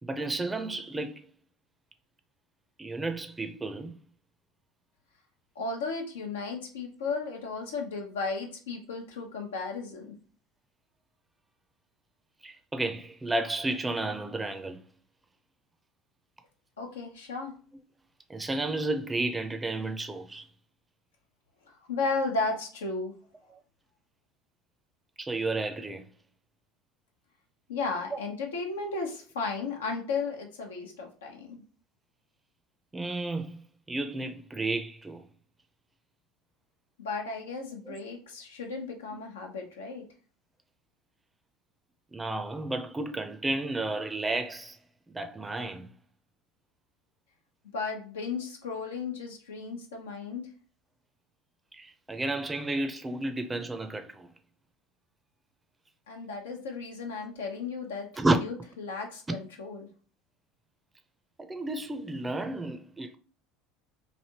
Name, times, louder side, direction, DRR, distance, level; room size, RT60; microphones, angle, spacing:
voice 1, 0.0-1.2 2.8-4.0 12.4-14.8 18.3-20.4 25.2-26.1 32.9-33.6 33.9-35.2 37.9-38.0 42.1-44.8 45.1-45.9 51.7-54.3 58.2-58.4 61.4-63.2, right 2 dB, 15° right, 0.5 m, -32 dB
voice 2, 5.6-10.1 16.8-17.5 21.7-23.1 27.7-31.6 37.0-40.0 47.7-50.4 56.1-58.1 58.4-59.9, left 4 dB, 80° left, 0.7 m, -34 dB
3.2 x 2.6 x 2.8 m
hypercardioid pair, 75°, 0 cm